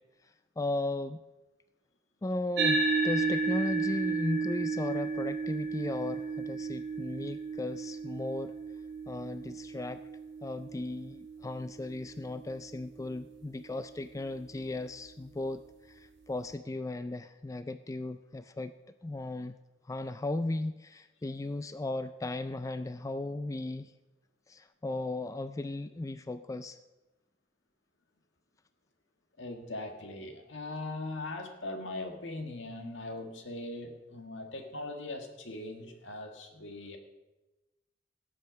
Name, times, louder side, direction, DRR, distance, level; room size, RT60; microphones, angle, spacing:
voice 1, 0.6-1.2 2.2-8.5 9.1-10.0 10.4-15.6 15.9-18.7 19.0-19.6 19.9-23.9 24.5-26.8, left 2 dB, 15° left, 11 dB, 0.3 m, -36 dB
sound 1, 2.6-11.3, right 4 dB, 70° right, 2.5 m, -32 dB
voice 2, 29.4-37.0, left 2 dB, 80° left, 5 dB, 1.7 m, -40 dB
17.5 x 7.8 x 5.3 m, 1.1 s
head